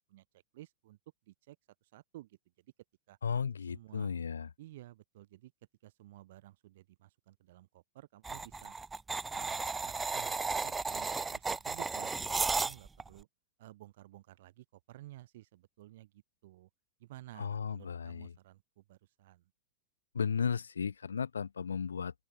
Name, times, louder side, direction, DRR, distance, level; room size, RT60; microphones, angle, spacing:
voice 1, 0.1-1.0 1.3-1.6 1.8-2.7 3.1-3.2 3.7-4.1 4.6-5.5 5.8-8.7 9.3-13.3 13.6-16.7 17.0-19.4, right 16 dB, 60° right, 6.6 m, -54 dB
voice 2, 3.2-4.5 17.4-18.3 20.1-22.1, left 6 dB, 80° left, 3.8 m, -35 dB
sound 1, 8.2-13.1, right 4 dB, 15° right, 0.4 m, -34 dB
open air
figure-of-eight pair, 95°, 0 cm